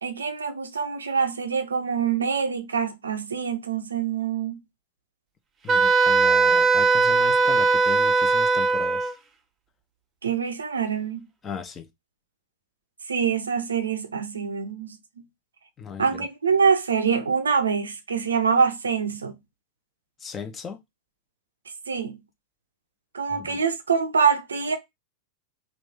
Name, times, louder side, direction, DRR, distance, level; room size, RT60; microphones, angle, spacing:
voice 1, 0.0-4.6 10.2-11.3 13.1-15.2 16.0-19.4 21.9-22.2 23.1-24.8, right 6 dB, 70° right, 0.5 m, -25 dB
voice 2, 5.6-9.1 11.4-11.9 15.8-16.3 20.2-20.8 23.3-23.6, left 6 dB, 20° left, 0.8 m, -37 dB
Wind instrument woodwind instrument, 5.7-9.1, right 4 dB, 20° right, 0.6 m, -19 dB
3.1 x 2.6 x 3.5 m
figure-of-eight pair, 90°, 0 cm